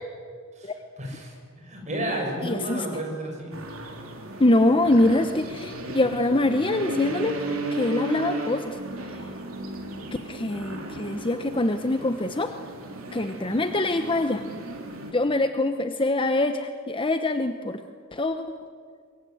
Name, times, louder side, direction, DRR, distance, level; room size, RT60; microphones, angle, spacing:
voice 1, 0.6-1.3 1.6-3.6, right 1 dB, 35° right, 0 dB, 7.0 m, -32 dB
voice 2, 2.4-2.9 4.4-8.8 10.2-12.5 13.1-14.4 15.1-17.8 18.1-18.4, left 2 dB, 25° left, 8 dB, 0.9 m, -24 dB
sound 1, 3.5-15.1, right 1 dB, 70° right, 3.6 m, -35 dB
24.5 x 22.0 x 9.4 m, 2.1 s
head